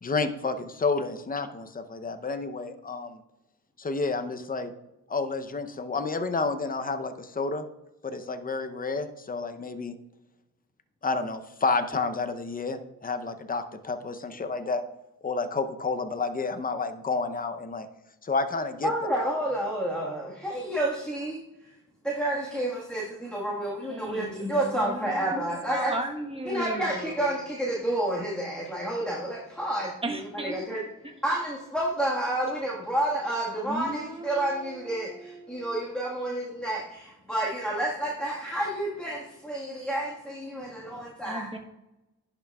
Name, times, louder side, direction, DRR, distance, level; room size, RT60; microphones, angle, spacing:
voice 1, 0.0-3.2 3.8-4.7 5.1-7.6 8.0-9.9 11.0-14.8 15.2-17.9 18.2-18.9, left 4 dB, 25° left, 9 dB, 0.6 m, -30 dB
voice 2, 18.8-21.4 22.0-26.0 26.4-30.8 31.2-41.5, right 1 dB, 5° left, -5 dB, 1.5 m, -30 dB
voice 3, 23.9-27.3 30.0-30.6 33.6-35.8 41.2-41.6, right 1 dB, 15° right, 3 dB, 1.1 m, -37 dB
10.5 x 5.9 x 2.3 m, 0.95 s
cardioid pair, 75°, 35 cm